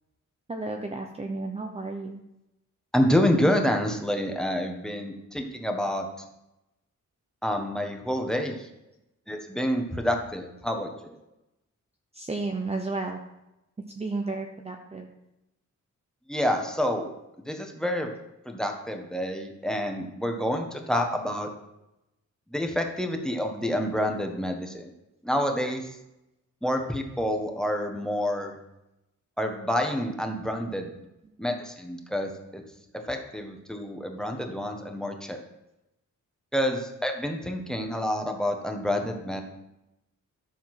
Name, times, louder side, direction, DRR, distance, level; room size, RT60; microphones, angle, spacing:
voice 1, 0.5-2.2 12.1-13.2 14.0-15.1 31.4-31.6, right 3 dB, 20° right, 2 dB, 0.8 m, -32 dB
voice 2, 2.9-6.1 7.4-8.7 9.3-11.2 16.3-17.1 17.4-18.1 18.4-21.5 22.5-24.9 25.2-25.9 26.6-28.5 29.4-30.9 31.4-32.6 33.1-35.4 36.5-39.4, equal, ahead, 3 dB, 1.3 m, -28 dB
12.5 x 7.0 x 6.0 m, 0.90 s
wide cardioid pair, 170°, 30 cm